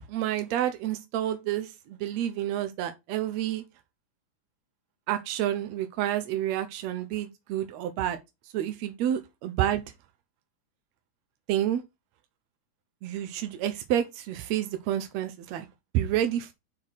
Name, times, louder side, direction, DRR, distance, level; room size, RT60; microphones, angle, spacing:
voice 1, 0.1-3.6 5.1-8.2 8.5-9.8 11.5-11.8 13.0-15.7 15.9-16.5, right 11 dB, 80° right, 1.6 m, -29 dB
5.8 x 4.6 x 6.2 m
omnidirectional pair, 3.8 m